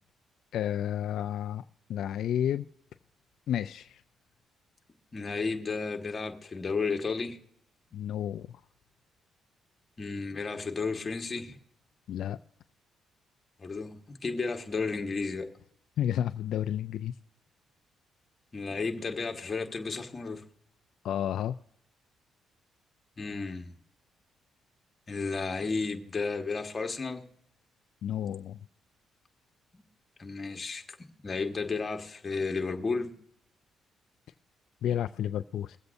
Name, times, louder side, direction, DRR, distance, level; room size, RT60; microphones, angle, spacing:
voice 1, 0.5-1.6 1.9-2.7 3.5-4.0 7.9-8.5 12.1-12.4 16.0-17.1 21.0-21.6 28.0-28.6 34.8-35.8, left 10 dB, 75° left, 0.3 m, -31 dB
voice 2, 5.1-7.4 10.0-11.6 13.6-15.5 18.5-20.4 23.2-23.8 25.1-27.2 29.7-29.8 30.2-33.1, left 4 dB, 30° left, 1.4 m, -33 dB
22.5 x 8.0 x 2.6 m
cardioid pair, 90°, 0 cm